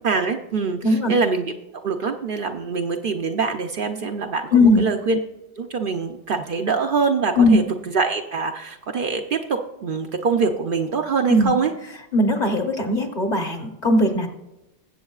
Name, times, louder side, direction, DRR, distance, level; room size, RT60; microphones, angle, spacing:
voice 1, 0.0-1.5 1.8-5.2 5.6-7.6 7.9-11.7, right 4 dB, 55° right, 5 dB, 0.7 m, -24 dB
voice 2, 4.5-4.8 7.4-7.6 11.3-11.5 12.1-14.3, left 1 dB, 40° left, 5 dB, 1.0 m, -18 dB
20.0 x 7.9 x 2.4 m, 0.95 s
omnidirectional pair, 1.2 m